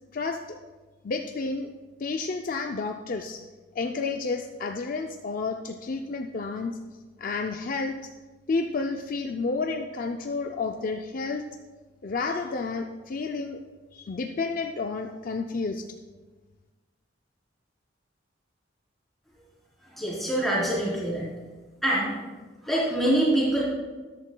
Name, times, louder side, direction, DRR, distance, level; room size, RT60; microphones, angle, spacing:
voice 1, 0.1-0.6 1.0-1.7 2.0-3.4 3.8-6.7 7.2-8.1 8.5-11.5 12.0-13.6 13.9-15.9, left 4 dB, 45° left, 4 dB, 0.4 m, -30 dB
voice 2, 19.8-21.3 21.8-22.2 22.6-23.6, right 1 dB, ahead, -8 dB, 3.5 m, -25 dB
13.5 x 11.5 x 2.2 m, 1.3 s
head